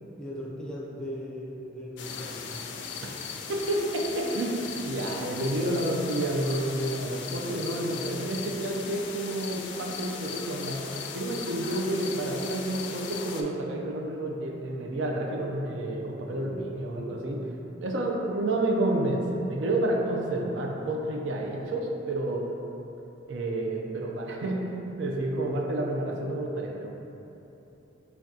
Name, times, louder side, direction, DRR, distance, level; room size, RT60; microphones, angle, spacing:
voice 1, 0.2-2.5, equal, 5° left, -5 dB, 0.5 m, -38 dB
sound 1, 2.0-13.4, left 6 dB, 65° left, 0.3 m, -38 dB
voice 2, 3.5-10.8 11.1-17.4 17.8-22.4 23.3-26.9, right 1 dB, 90° right, 0 dB, 0.5 m, -30 dB
5.9 x 2.3 x 2.7 m, 2.9 s
head